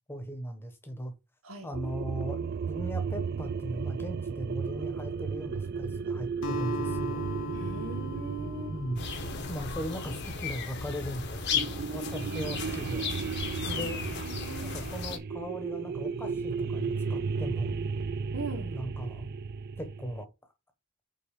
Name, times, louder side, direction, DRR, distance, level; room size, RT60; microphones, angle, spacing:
voice 1, 0.1-1.1 1.6-7.3 8.7-13.1 13.6-14.0 14.6-17.8 18.6-19.4 19.8-20.3, equal, 10° left, 1.2 m, -38 dB
sound 1, 1.7-10.8 11.5-20.2, right 5 dB, 50° right, 0.3 m, -34 dB
Acoustic guitar, 6.4-10.9, left 2 dB, 70° left, 1.2 m, -40 dB
voice 2, 7.5-8.8 12.5-12.6 13.7-14.8 18.3-18.7, right 2 dB, 85° right, 1.8 m, -40 dB
sound 2, 9.0-15.2, left 5 dB, 55° left, 1.1 m, -35 dB
5.3 x 4.0 x 4.8 m
head